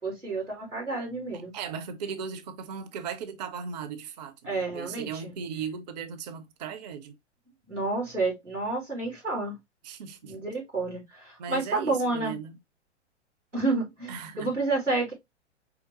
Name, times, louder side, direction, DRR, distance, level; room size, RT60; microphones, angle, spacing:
voice 1, 0.0-1.5 4.4-5.4 7.7-9.5 10.2-12.4 13.5-15.1, right 3 dB, 90° right, 3.6 m, -30 dB
voice 2, 1.3-7.1 9.8-10.3 11.4-12.6 14.1-14.5, right 6 dB, 35° right, 0.6 m, -37 dB
4.9 x 3.4 x 2.9 m
figure-of-eight pair, 105°, 36 cm